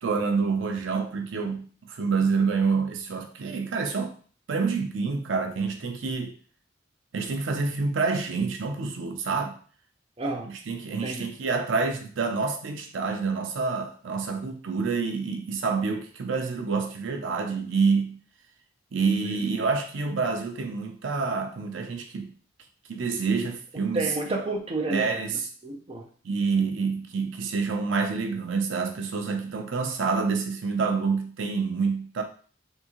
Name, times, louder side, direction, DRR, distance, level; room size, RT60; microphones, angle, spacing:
voice 1, 0.0-4.1 4.5-6.3 7.1-9.6 10.5-18.1 18.9-22.3 22.9-24.1 24.9-25.5 26.2-32.2, right 4 dB, 85° right, 0.5 m, -27 dB
voice 2, 10.2-10.5 11.0-11.3 19.2-19.3 23.7-25.2 25.6-26.1, right 2 dB, 30° right, 0.5 m, -31 dB
3.6 x 2.7 x 2.9 m
head